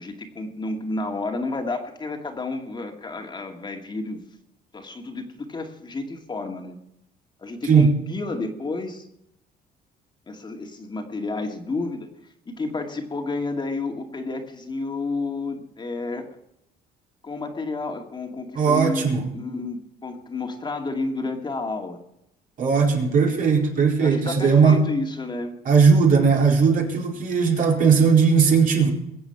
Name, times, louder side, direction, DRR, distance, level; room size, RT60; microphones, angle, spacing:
voice 1, 0.0-4.2 4.7-6.8 7.4-9.1 10.3-12.1 12.5-16.2 17.2-22.0 24.0-25.6, left 3 dB, 25° left, 3 dB, 2.3 m, -31 dB
voice 2, 18.5-19.3 22.6-24.8 25.6-28.9, right 5 dB, 55° right, 0 dB, 4.3 m, -18 dB
22.0 x 7.9 x 5.9 m, 0.79 s
cardioid pair, 110°, 17 cm